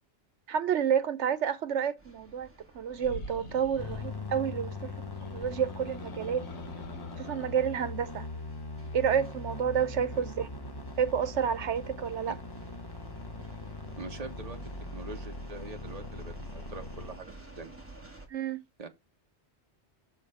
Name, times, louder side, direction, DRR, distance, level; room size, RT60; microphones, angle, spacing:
voice 1, 0.5-2.5 2.7-5.0 5.3-6.4 7.2-8.3 8.9-10.5 11.0-12.4 18.3-18.6, right 8 dB, 80° right, 1.2 m, -29 dB
sound 1, 2.0-18.3, right 2 dB, 10° right, 2.1 m, -54 dB
sound 2, 2.9-4.1 5.0-7.6, left 1 dB, 70° left, 1.4 m, -46 dB
sound 3, 3.8-17.2, left 2 dB, 25° left, 0.8 m, -41 dB
voice 2, 14.0-14.6 14.9-17.8 18.8-18.9, right 3 dB, 35° right, 1.2 m, -43 dB
6.7 x 5.1 x 4.9 m
omnidirectional pair, 1.2 m